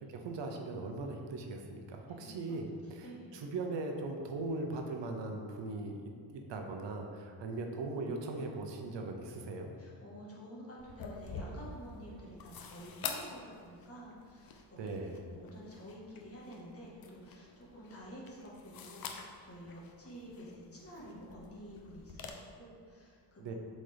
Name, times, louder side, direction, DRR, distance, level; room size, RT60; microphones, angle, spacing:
voice 1, 0.0-9.7 14.8-15.1 23.4-23.5, right 3 dB, 65° right, 3 dB, 0.8 m, -39 dB
voice 2, 2.1-2.6 3.0-3.4 9.8-14.8 15.3-23.5, equal, 30° left, -5 dB, 1.5 m, -50 dB
sound 1, 10.8-22.3, left 5 dB, 50° left, 0.7 m, -48 dB
7.5 x 4.2 x 3.4 m, 2.1 s
cardioid pair, 125°, 46 cm